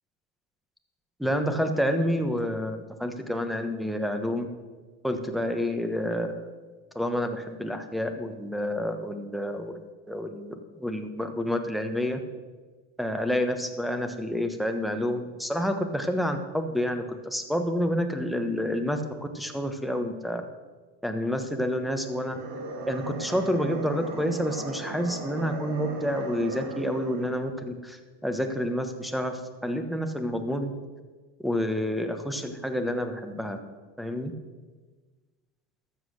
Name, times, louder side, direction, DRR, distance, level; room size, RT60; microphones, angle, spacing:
voice 1, 1.2-4.5 5.0-6.5 6.9-12.2 13.0-19.0 19.3-20.4 21.0-22.3 22.9-30.7 31.4-33.6 34.0-34.3, equal, ahead, 7 dB, 1.1 m, -29 dB
sound 1, 22.1-27.4, right 3 dB, 50° right, 2.3 m, -37 dB
12.5 x 7.6 x 6.5 m, 1.4 s
supercardioid pair, 110°, 50 cm